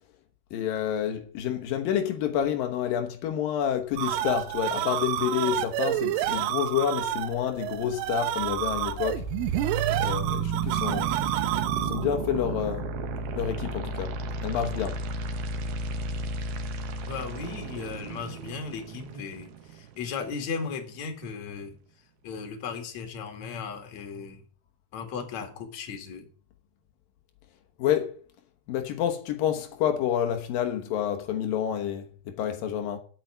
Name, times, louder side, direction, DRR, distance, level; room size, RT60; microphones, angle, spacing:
voice 1, 0.5-9.3 10.0-11.1 11.8-12.9 13.4-14.2 14.4-15.0 27.8-28.2 28.7-33.0, left 9 dB, 85° left, 2.0 m, -28 dB
sound 1, 3.7-12.2, right 13 dB, 90° right, 3.4 m, -29 dB
sound 2, 8.3-20.3, right 4 dB, 65° right, 2.8 m, -33 dB
voice 2, 17.1-21.8 22.2-24.4 24.9-26.3, left 5 dB, 50° left, 2.4 m, -36 dB
8.8 x 8.5 x 9.4 m
omnidirectional pair, 5.7 m